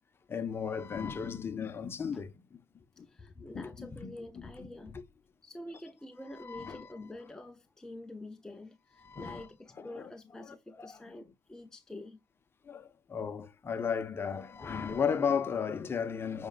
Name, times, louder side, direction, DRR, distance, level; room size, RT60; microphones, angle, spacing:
voice 1, 0.3-2.3 3.0-3.1 3.4-4.1 4.6-4.7 4.9-5.0 6.4-6.9 9.0-9.5 9.8-10.1 10.8-11.0 12.7-16.5, left 6 dB, 25° left, 1.1 m, -35 dB
voice 2, 3.0-5.0 5.4-12.2, left 1 dB, 5° left, 0.7 m, -47 dB
8.6 x 5.2 x 2.4 m
supercardioid pair, 115°, 10 cm